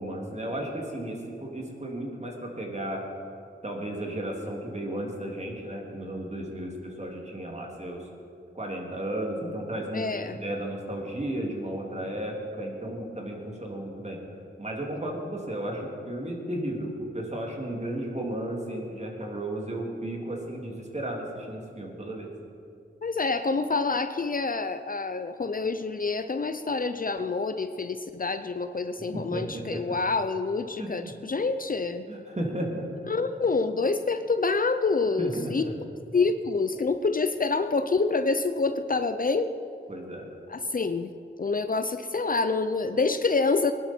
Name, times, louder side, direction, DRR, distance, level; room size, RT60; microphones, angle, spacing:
voice 1, 0.0-3.0 3.6-8.1 8.5-14.2 14.6-22.3 29.1-29.8 30.8-31.1 32.1-32.9 35.2-35.7 39.9-40.3, right 1 dB, 35° right, 0 dB, 2.8 m, -34 dB
voice 2, 9.9-10.4 23.0-32.0 33.1-35.6 36.1-39.5 40.5-41.1 41.4-43.7, left 4 dB, 40° left, 9 dB, 0.6 m, -27 dB
20.5 x 11.5 x 4.5 m, 2.6 s
wide cardioid pair, 70°, 21 cm